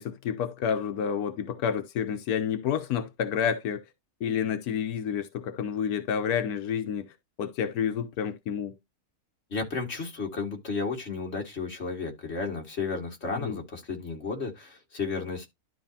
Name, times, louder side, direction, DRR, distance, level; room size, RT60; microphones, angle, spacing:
voice 1, 0.0-3.8 4.2-7.1 7.4-8.8 13.4-13.6, left 8 dB, 90° left, 1.3 m, -29 dB
voice 2, 9.5-15.5, left 4 dB, 45° left, 2.3 m, -33 dB
12.0 x 4.8 x 2.7 m
omnidirectional pair, 1.5 m